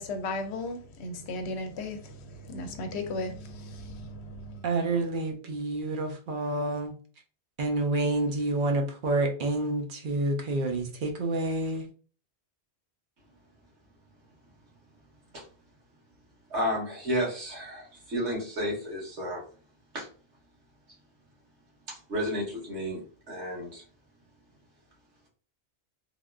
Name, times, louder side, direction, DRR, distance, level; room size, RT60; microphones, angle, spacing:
voice 1, 0.0-4.6, left 2 dB, 75° left, 0.8 m, -36 dB
voice 2, 4.6-6.9 7.6-11.9, right 2 dB, 55° right, 0.7 m, -28 dB
voice 3, 16.5-19.4 19.9-20.1 21.9-23.0 23.3-23.8, equal, 90° right, 1.7 m, -32 dB
3.4 x 2.4 x 2.3 m
omnidirectional pair, 1.1 m